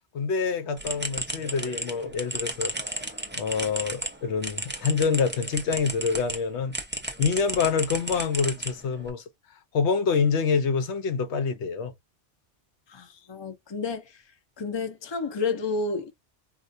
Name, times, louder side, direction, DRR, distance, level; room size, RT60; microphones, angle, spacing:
voice 1, 0.1-3.0 3.4-6.8 7.2-9.2 9.7-11.9, left 5 dB, 75° left, 1.0 m, -26 dB
sound 1, 0.8-6.4 6.7-9.1, right 1 dB, 10° right, 0.7 m, -34 dB
voice 2, 12.9-14.2 14.6-16.1, left 4 dB, 25° left, 0.7 m, -30 dB
4.4 x 2.4 x 2.6 m
omnidirectional pair, 1.2 m